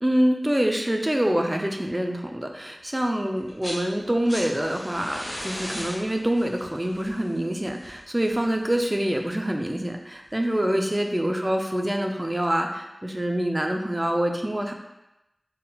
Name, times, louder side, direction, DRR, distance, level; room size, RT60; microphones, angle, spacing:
voice 1, 0.0-14.7, right 1 dB, 20° right, 3 dB, 0.4 m, -25 dB
sound 1, 3.4-3.8 4.1-9.0 10.2-10.3, equal, 30° left, 1.5 m, -37 dB
4.1 x 3.7 x 2.3 m, 0.93 s
wide cardioid pair, 70°, 0 cm